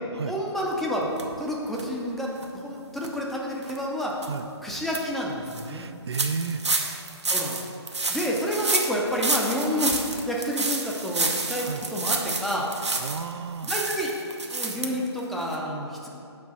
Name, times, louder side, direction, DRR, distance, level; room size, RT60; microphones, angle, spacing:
voice 1, 0.3-1.1 1.4-4.1 4.6-5.9 7.3-7.6 8.1-12.7 13.6-14.1 14.5-16.1, equal, ahead, -3 dB, 0.4 m, -29 dB
sound 1, 1.2-1.3 1.7-1.8 2.3-2.4 3.0-3.1 3.6-3.8 4.2-4.3 4.7-5.0 5.5-5.6 6.1-13.3 13.6-14.9 15.2-15.3 15.5-15.6, right 3 dB, 85° right, 0.8 m, -29 dB
voice 2, 5.7-6.6 11.6-11.8 13.0-13.7, right 5 dB, 70° right, 10 dB, 0.4 m, -32 dB
5.4 x 4.8 x 5.5 m, 2.6 s
figure-of-eight pair, 140°, 14 cm